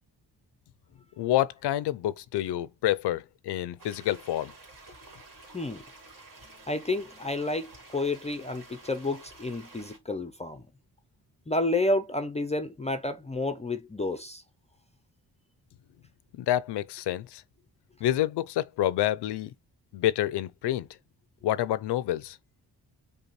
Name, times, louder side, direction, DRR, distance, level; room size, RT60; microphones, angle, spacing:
voice 1, 1.2-4.5 16.4-17.4 18.0-19.5 19.9-20.9 21.4-22.4, left 13 dB, 75° left, 0.5 m, -28 dB
sound 1, 3.8-10.0, right 2 dB, 50° right, 1.9 m, -51 dB
voice 2, 6.7-10.6 11.5-14.4, left 2 dB, 15° left, 0.5 m, -30 dB
5.2 x 2.2 x 3.1 m
cardioid pair, 90°, 40 cm